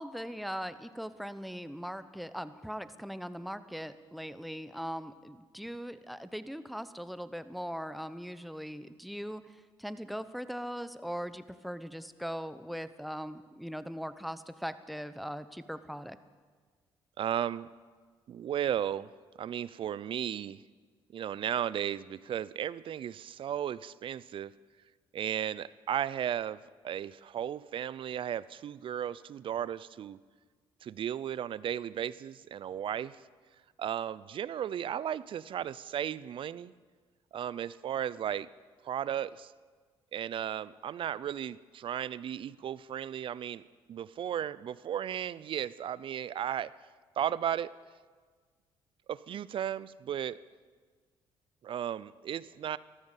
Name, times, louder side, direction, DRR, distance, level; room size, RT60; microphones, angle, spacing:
voice 1, 0.0-9.4 9.8-16.2, equal, ahead, 13 dB, 0.8 m, -40 dB
voice 2, 17.2-17.7 18.3-19.1 19.4-20.6 21.1-24.5 25.1-30.2 30.8-33.2 33.8-36.7 37.3-38.5 38.8-39.5 40.1-43.6 43.9-46.7 47.2-47.7 49.1-50.4 51.6-52.8, right 10 dB, 55° right, 19 dB, 0.5 m, -35 dB
13.5 x 13.5 x 7.4 m, 1.5 s
supercardioid pair, 70°, 11 cm